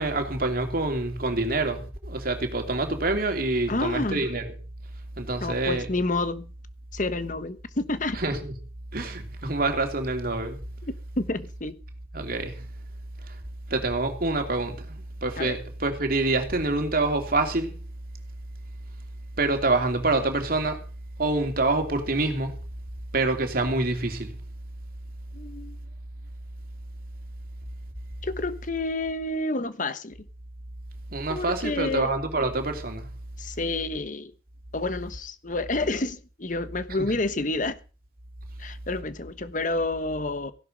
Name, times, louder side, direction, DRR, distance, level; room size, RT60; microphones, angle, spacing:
voice 1, 0.0-4.5 5.2-5.9 8.1-8.5 8.9-10.6 12.1-12.6 13.7-17.7 19.4-20.8 21.2-22.5 23.1-24.3 31.1-33.0, right 2 dB, 55° right, 2.8 m, -26 dB
voice 2, 3.7-4.3 5.4-6.5 6.9-8.2 10.8-11.7 15.4-15.6 25.3-25.8 28.2-30.1 31.3-32.1 33.4-34.3 34.7-37.8 38.6-40.5, left 2 dB, 45° left, 1.2 m, -29 dB
15.5 x 11.5 x 5.3 m
head